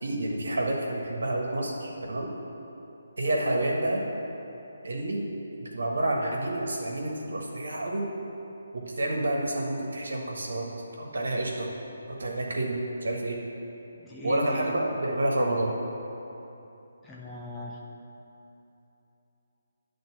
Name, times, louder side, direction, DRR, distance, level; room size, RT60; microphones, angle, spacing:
voice 1, 0.0-2.3 3.2-4.0 4.8-5.2 5.6-8.1 8.7-10.7 11.0-11.7 12.1-13.4 14.2-15.7, right 1 dB, 70° right, -1 dB, 1.5 m, -29 dB
voice 2, 14.0-14.8 17.0-17.8, left 1 dB, 10° left, -4 dB, 0.8 m, -39 dB
10.5 x 3.7 x 7.1 m, 3.0 s
figure-of-eight pair, 150°, 0 cm